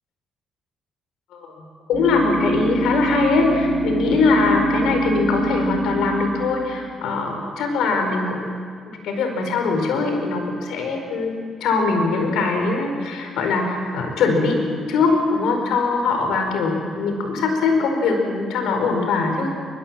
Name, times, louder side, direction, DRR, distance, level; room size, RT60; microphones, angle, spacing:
voice 1, 1.3-8.5 8.9-11.3 11.6-14.6 14.9-19.5, left 4 dB, 85° left, 4 dB, 4.8 m, -22 dB
sound 1, 1.9-6.9, right 1 dB, 50° right, 5.2 m, -24 dB
22.5 x 21.5 x 7.6 m, 2.1 s
cardioid pair, 90°, 0 cm